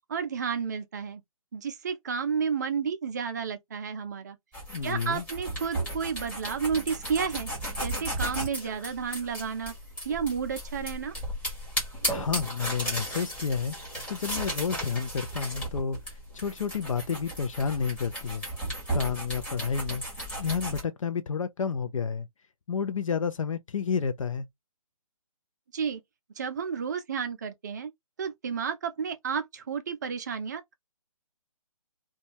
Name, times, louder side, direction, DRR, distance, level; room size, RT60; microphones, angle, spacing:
voice 1, 0.1-1.2 1.5-4.4 4.8-7.5 7.8-9.7 10.0-11.1 25.7-26.0 26.4-27.9 28.2-30.7, right 6 dB, 30° right, 0.4 m, -31 dB
sound 1, 4.5-20.8, right 1 dB, 5° left, 1.2 m, -35 dB
voice 2, 4.7-5.3 12.1-13.8 14.1-18.5 18.9-20.0 20.4-22.3 22.7-24.5, left 6 dB, 60° left, 0.4 m, -30 dB
2.5 x 2.3 x 2.8 m
hypercardioid pair, 155°, 19 cm